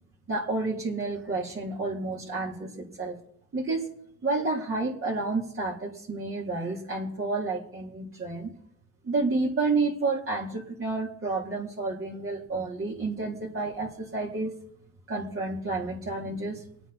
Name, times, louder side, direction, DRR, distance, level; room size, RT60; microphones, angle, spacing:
voice 1, 0.3-3.2 3.5-3.9 4.2-8.5 9.0-14.5 15.1-16.6, right 3 dB, 45° right, -6 dB, 4.1 m, -30 dB
26.0 x 9.0 x 4.5 m, 0.67 s
cardioid pair, 90°, 30 cm